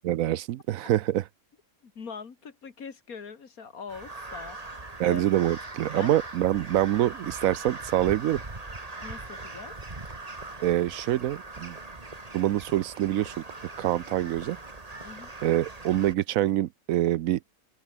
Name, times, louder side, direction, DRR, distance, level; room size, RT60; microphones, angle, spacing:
voice 1, 0.0-1.2 5.0-8.4 10.6-11.8 12.3-13.3 13.8-14.6 15.4-17.4, right 13 dB, 75° right, 1.0 m, -25 dB
voice 2, 1.8-5.2 5.9-6.1 9.0-9.8 15.0-15.4, left 5 dB, 80° left, 2.4 m, -42 dB
Crow, 3.9-16.1, right 2 dB, 25° right, 2.2 m, -41 dB
omnidirectional pair, 1.5 m